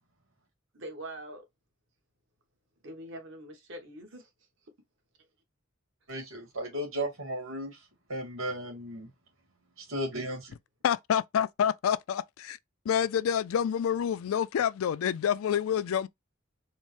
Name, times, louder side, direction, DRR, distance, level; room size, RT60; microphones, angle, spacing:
voice 1, 0.7-1.5 2.8-4.3, right 1 dB, 65° right, 1.2 m, -43 dB
voice 2, 6.1-7.8 8.1-9.1 9.8-10.5, right 1 dB, 85° right, 2.2 m, -35 dB
voice 3, 10.8-12.6 12.9-16.1, left 8 dB, 85° left, 0.3 m, -28 dB
4.4 x 2.1 x 3.1 m
head